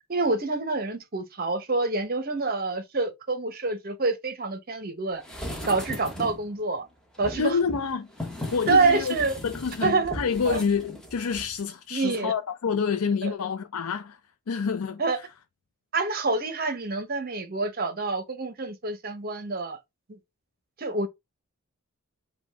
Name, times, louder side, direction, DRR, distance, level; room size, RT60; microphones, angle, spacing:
voice 1, 0.1-5.2 5.7-6.8 7.2-7.6 8.7-9.3 9.8-10.2 10.5-10.6 11.9-12.3 13.2-13.3 15.0-15.2 15.9-19.8 20.1-20.2 20.8-21.1, right 3 dB, 45° right, 0.8 m, -27 dB
sound 1, 5.2-6.5 7.2-11.7 12.0-12.1, left 1 dB, 5° left, 1.0 m, -38 dB
voice 2, 7.4-8.1 8.5-9.2 9.4-14.2 14.5-15.3, left 6 dB, 85° left, 0.5 m, -28 dB
5.2 x 2.3 x 4.4 m
head